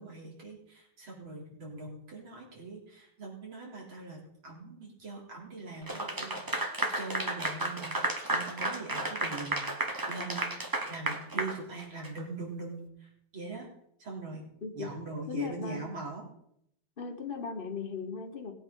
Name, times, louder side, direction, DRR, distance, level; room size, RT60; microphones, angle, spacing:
voice 1, 0.0-6.7 6.9-10.5 10.9-13.7 14.0-14.5 14.7-16.2, right 3 dB, 70° right, -3 dB, 4.4 m, -42 dB
Clapping / Applause, 5.9-12.2, right 2 dB, 35° right, 0.3 m, -33 dB
voice 2, 15.3-15.8 17.0-18.5, left 5 dB, 30° left, 5 dB, 1.1 m, -37 dB
19.5 x 8.7 x 3.9 m, 0.72 s
omnidirectional pair, 2.3 m